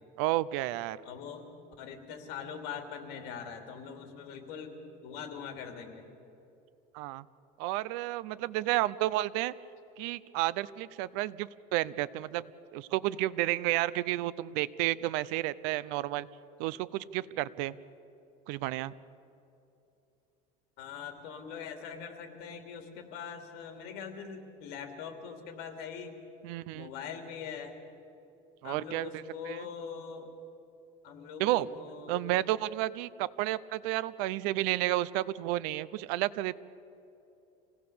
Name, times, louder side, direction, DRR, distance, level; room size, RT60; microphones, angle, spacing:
voice 1, 0.2-1.0 6.9-7.2 7.6-9.5 10.0-12.4 12.7-16.3 16.6-17.8 18.5-18.9 26.4-26.9 28.6-29.7 31.4-31.7 32.1-36.5, right 16 dB, 80° right, 17 dB, 0.7 m, -31 dB
voice 2, 1.0-1.5 1.8-6.0 20.8-26.2 26.7-27.8 28.6-30.3 31.0-32.4, left 6 dB, 70° left, 5 dB, 2.9 m, -42 dB
27.0 x 17.5 x 7.0 m, 2.8 s
cardioid pair, 145°, 17 cm